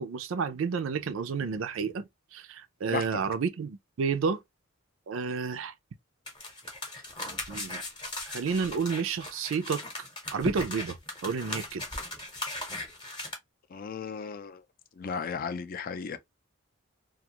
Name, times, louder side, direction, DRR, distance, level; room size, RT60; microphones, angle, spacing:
voice 1, 0.0-2.0 2.3-4.4 5.1-5.7 7.5-7.8 8.3-11.0 11.2-11.8, right 5 dB, 80° right, 0.4 m, -31 dB
sound 1, 6.3-13.3, left 2 dB, 25° left, 0.8 m, -38 dB
voice 2, 13.7-14.6 15.0-16.2, left 6 dB, 45° left, 0.4 m, -35 dB
2.4 x 2.3 x 2.8 m
head